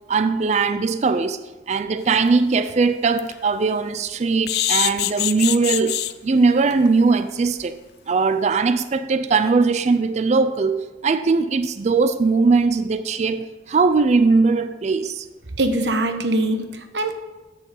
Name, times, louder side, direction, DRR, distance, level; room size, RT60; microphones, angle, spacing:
voice 1, 0.1-7.8 8.1-15.3, right 4 dB, 40° right, 0.4 m, -20 dB
sound 1, 2.1-2.2 2.7-2.8 3.1-3.3 4.5-6.1 6.7-6.9 7.2-7.3 7.6-7.7, left 13 dB, 65° left, 0.4 m, -23 dB
voice 2, 15.6-17.1, right 1 dB, 80° right, 1.0 m, -22 dB
8.3 x 6.6 x 5.4 m
head